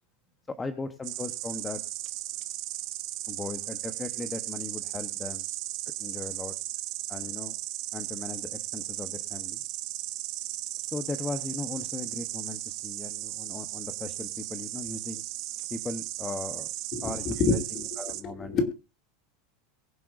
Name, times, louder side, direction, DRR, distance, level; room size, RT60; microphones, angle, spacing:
voice 1, 0.5-1.8 3.3-5.5 6.0-6.5 7.1-7.5 7.9-9.6 10.8-15.2 15.7-16.7 17.0-17.6 18.0-18.7, left 3 dB, 10° left, 8 dB, 0.9 m, -38 dB
Insect, 1.0-18.2, right 16 dB, 45° right, 1.0 m, -36 dB
voice 2, 16.9-18.7, left 4 dB, 30° left, 5 dB, 2.4 m, -29 dB
22.5 x 7.7 x 2.5 m, 0.27 s
supercardioid pair, 165°, 0 cm